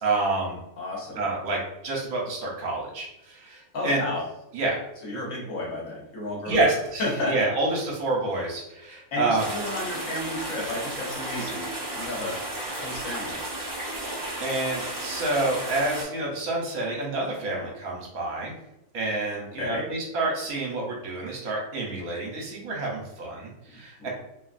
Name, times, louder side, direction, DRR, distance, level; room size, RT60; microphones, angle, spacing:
voice 1, 0.0-0.6 1.2-4.0 4.5-4.8 6.4-9.5 14.0-14.1 14.4-18.5 18.9-24.1, right 2 dB, 70° right, -2 dB, 1.2 m, -28 dB
voice 2, 0.8-1.2 3.7-4.2 5.0-6.7 7.0-7.3 9.1-11.7 11.9-12.4 12.8-13.4 17.4-17.7 19.6-19.8 24.0-24.1, left 1 dB, 65° left, -4 dB, 1.3 m, -32 dB
sound 1, 9.4-16.0, right 1 dB, 30° right, 0.3 m, -34 dB
2.9 x 2.4 x 2.4 m, 0.85 s
omnidirectional pair, 1.6 m